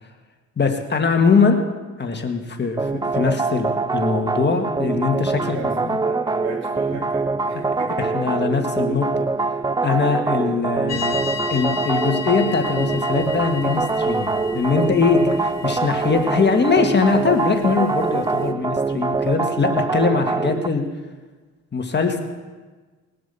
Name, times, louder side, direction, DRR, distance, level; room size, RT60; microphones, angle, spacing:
voice 1, 0.6-1.6 2.0-6.0 6.9-7.0 8.0-9.3 9.8-11.2 11.5-20.9 21.7-22.2, left 5 dB, 35° left, 4 dB, 1.7 m, -21 dB
sound 1, 2.8-20.7, right 4 dB, 15° right, 0.5 m, -24 dB
voice 2, 5.3-8.1, right 4 dB, 60° right, -3 dB, 2.8 m, -36 dB
sound 2, 10.9-18.5, left 6 dB, 60° left, 0.9 m, -34 dB
20.5 x 7.7 x 6.9 m, 1.3 s
cardioid pair, 90°, 30 cm